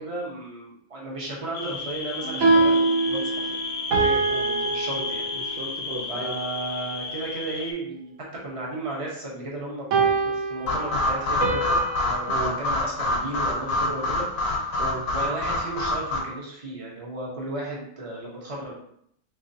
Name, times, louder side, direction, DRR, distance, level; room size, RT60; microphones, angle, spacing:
voice 1, 0.0-3.5 4.6-5.3 6.1-8.1 8.4-14.7 15.1-18.8, right 2 dB, 30° right, -3 dB, 0.7 m, -34 dB
sound 1, 1.5-7.7, left 4 dB, 65° left, 0.7 m, -33 dB
sound 2, 2.2-5.7 9.9-12.4, right 3 dB, 65° right, 1.2 m, -24 dB
voice 2, 4.0-5.1 5.3-6.4 12.3-12.6 14.8-15.1, right 2 dB, 85° right, -1 dB, 0.5 m, -35 dB
sound 3, 10.7-16.2, left 1 dB, 80° left, 1.4 m, -26 dB
3.6 x 3.3 x 2.7 m, 0.71 s
omnidirectional pair, 1.6 m